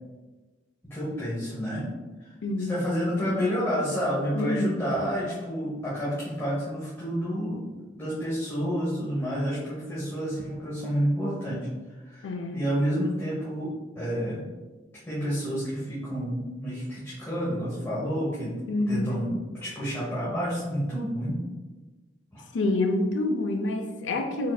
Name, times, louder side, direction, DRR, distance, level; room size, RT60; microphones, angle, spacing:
voice 1, 0.8-1.9 2.2-2.3 2.7-11.7 12.0-13.7 14.0-14.4 15.0-18.5 18.9-19.3 19.6-21.4 22.3-22.4, equal, 15° left, -9 dB, 1.1 m, -29 dB
voice 2, 2.4-2.8 4.3-4.8 12.2-12.6 18.7-19.2 22.5-24.5, left 2 dB, 85° left, 5 dB, 0.5 m, -27 dB
6.4 x 3.6 x 2.3 m, 1.3 s
head